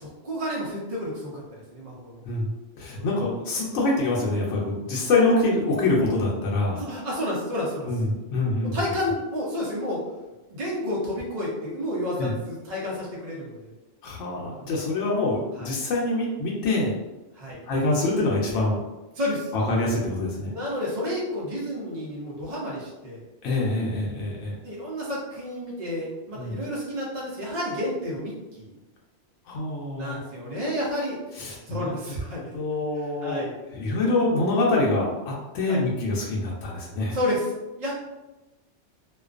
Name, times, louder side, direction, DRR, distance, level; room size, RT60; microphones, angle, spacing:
voice 1, 0.0-2.2 2.9-3.2 6.7-7.9 8.7-10.0 10.5-13.7 15.6-15.7 17.3-17.6 19.1-19.5 20.4-23.2 24.6-28.7 30.0-32.5 33.2-33.5 35.6-35.8 37.1-37.5 37.8-37.9, left 1 dB, 45° right, -5 dB, 0.6 m, -31 dB
voice 2, 2.8-6.8 7.9-8.8 12.2-12.3 14.0-16.9 17.7-18.8 19.5-20.5 23.4-24.5 26.4-26.6 29.5-30.2 31.3-31.9 32.3-33.4 33.7-37.2, left 2 dB, 90° left, -3 dB, 0.9 m, -25 dB
2.4 x 2.2 x 2.3 m, 1.1 s
omnidirectional pair, 1.2 m